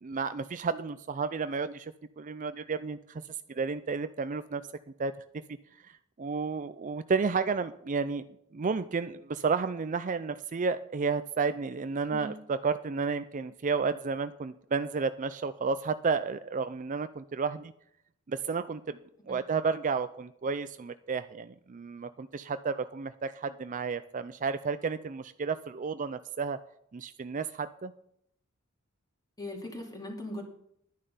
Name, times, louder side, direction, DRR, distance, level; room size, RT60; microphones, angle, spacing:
voice 1, 0.0-4.6 5.0-5.1 5.8-8.2 8.5-17.7 18.3-19.0 19.3-26.6 26.9-27.9, right 5 dB, 35° right, 12 dB, 0.4 m, -32 dB
voice 2, 29.4-30.4, left 1 dB, 20° left, 1 dB, 2.7 m, -39 dB
11.5 x 10.0 x 5.6 m, 0.72 s
head